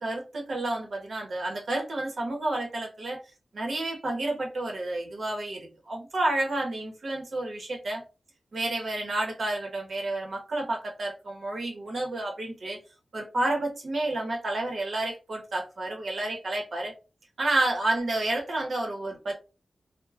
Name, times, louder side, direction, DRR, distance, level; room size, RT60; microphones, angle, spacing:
voice 1, 0.0-3.2 3.5-8.0 8.5-12.8 13.1-16.9 17.4-19.3, right 2 dB, 60° right, 0.8 m, -30 dB
2.2 x 2.1 x 3.4 m
wide cardioid pair, 100°, 0 cm